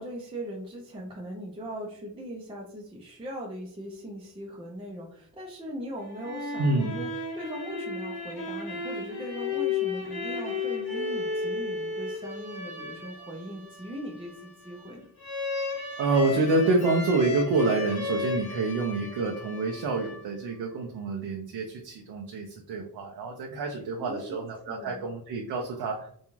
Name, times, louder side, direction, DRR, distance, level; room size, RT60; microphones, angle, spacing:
voice 1, 0.0-15.1 24.0-25.1, equal, 15° right, -1 dB, 0.4 m, -39 dB
sound 1, 6.0-20.6, left 4 dB, 90° left, 0.9 m, -34 dB
voice 2, 6.6-6.9 16.0-26.1, right 3 dB, 90° right, 0 dB, 0.5 m, -27 dB
2.5 x 2.3 x 3.0 m, 0.63 s
wide cardioid pair, 120°, 37 cm